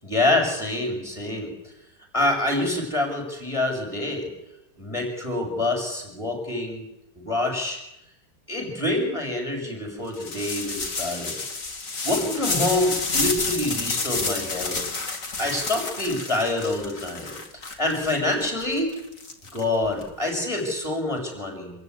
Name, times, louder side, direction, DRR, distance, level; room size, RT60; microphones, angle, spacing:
voice 1, 0.0-1.5 2.1-4.3 4.8-6.9 7.1-7.8 8.5-11.4 12.0-14.8 15.4-17.4 17.8-18.9 19.5-21.7, left 2 dB, 15° left, 2 dB, 7.9 m, -26 dB
sound 1, 10.1-20.0, left 4 dB, 50° left, 2.8 m, -30 dB
27.0 x 15.0 x 9.8 m, 0.86 s
omnidirectional pair, 1.9 m